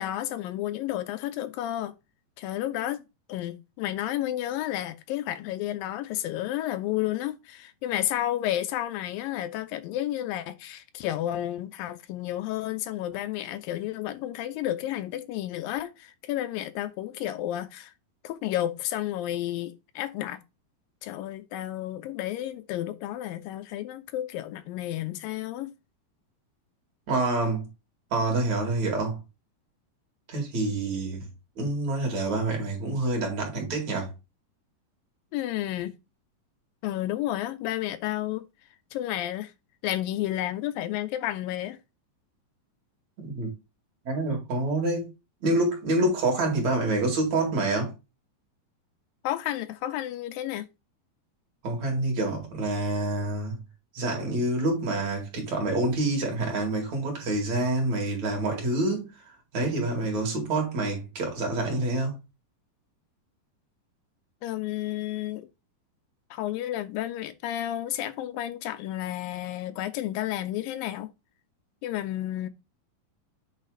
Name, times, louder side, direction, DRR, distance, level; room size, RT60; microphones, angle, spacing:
voice 1, 0.0-1.9 2.4-3.0 3.3-17.9 18.2-20.4 21.0-25.7 35.3-35.9 36.8-38.5 38.9-39.5 39.8-41.8 49.2-50.7 64.4-65.5 66.3-71.1 71.8-72.5, left 13 dB, 80° left, 2.3 m, -31 dB
voice 2, 27.1-27.7 28.1-29.2 30.3-31.3 31.6-34.1 43.2-43.5 44.1-45.1 45.4-47.9 51.6-53.6 53.9-59.1 59.5-62.2, right 2 dB, 50° right, 3.4 m, -27 dB
8.3 x 3.4 x 4.9 m
omnidirectional pair, 4.1 m